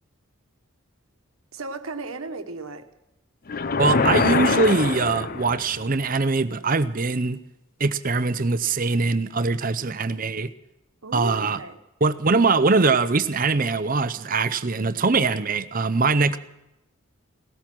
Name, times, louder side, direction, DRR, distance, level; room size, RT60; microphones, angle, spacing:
voice 1, 1.5-2.9 11.0-11.8, right 3 dB, 75° right, 7 dB, 1.3 m, -35 dB
sound 1, 3.5-5.8, left 4 dB, 40° left, 0.6 m, -23 dB
voice 2, 3.8-7.4 7.8-10.5 11.1-11.6 12.0-16.4, right 3 dB, 40° right, 13 dB, 0.7 m, -22 dB
17.5 x 13.5 x 6.1 m, 0.90 s
head